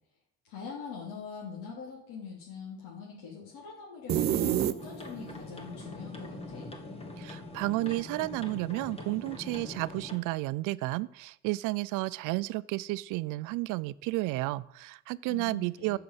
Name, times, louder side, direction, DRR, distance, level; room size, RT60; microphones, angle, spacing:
voice 1, 0.5-6.7 15.3-16.0, left 6 dB, 80° left, -6 dB, 3.8 m, -43 dB
sound 1, 4.1-5.3, right 11 dB, 35° right, 0.5 m, -27 dB
sound 2, 4.8-10.2, left 2 dB, 20° left, 1.7 m, -43 dB
voice 2, 7.2-16.0, right 20 dB, 75° right, 17 dB, 0.6 m, -32 dB
14.0 x 6.8 x 7.9 m, 0.76 s
cardioid pair, 160°, 31 cm